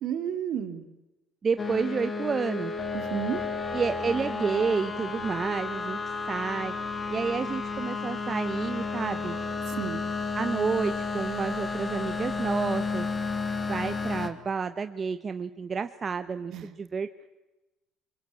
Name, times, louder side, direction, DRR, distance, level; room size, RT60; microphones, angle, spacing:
voice 1, 0.0-0.8 2.9-3.4 9.7-10.0 16.5-16.7, right 9 dB, 60° right, 8 dB, 2.9 m, -31 dB
voice 2, 1.4-2.7 3.7-6.0 6.3-6.7 7.1-9.4 10.3-13.1 13.7-17.3, right 5 dB, 30° right, 10 dB, 1.0 m, -30 dB
sound 1, 1.6-14.3, left 4 dB, 25° left, 2.7 m, -32 dB
23.0 x 23.0 x 8.6 m, 1.0 s
cardioid pair, 105°, 0 cm